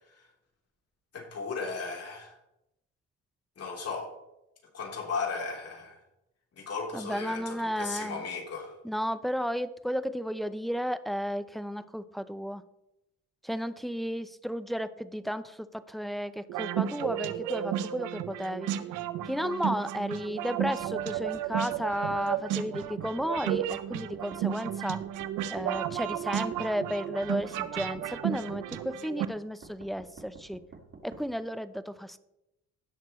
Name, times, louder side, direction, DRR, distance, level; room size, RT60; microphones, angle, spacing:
voice 1, 1.1-2.4 3.6-4.1 4.7-6.0 6.6-8.8, left 4 dB, 55° left, -1 dB, 3.7 m, -36 dB
voice 2, 6.9-8.2 8.8-12.6 13.4-18.7 19.3-25.0 25.5-30.6 31.0-32.2, equal, ahead, 13 dB, 0.6 m, -33 dB
sound 1, 16.5-29.2, right 10 dB, 90° right, 0.7 m, -33 dB
sound 2, 20.6-22.2 22.8-24.4 25.0-26.6 27.2-28.8 29.6-31.2, right 4 dB, 45° right, 2.0 m, -49 dB
17.0 x 6.6 x 3.2 m, 0.89 s
cardioid pair, 90°, 30 cm